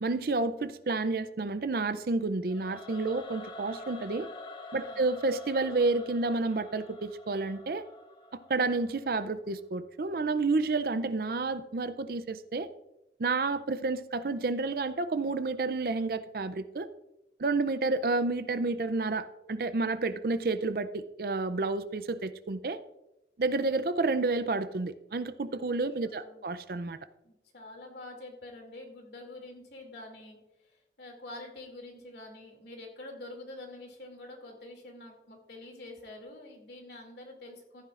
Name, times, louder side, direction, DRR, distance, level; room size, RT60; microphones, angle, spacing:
voice 1, 0.0-4.3 4.7-7.8 8.5-12.7 13.2-16.9 17.4-22.8 23.4-27.0, right 3 dB, 55° right, 13 dB, 0.5 m, -30 dB
Singing / Musical instrument, 2.5-9.6, left 2 dB, 25° left, 1.0 m, -47 dB
voice 2, 25.9-26.4 27.2-37.8, left 2 dB, 70° left, 2 dB, 2.6 m, -46 dB
14.5 x 9.9 x 2.5 m, 0.93 s
head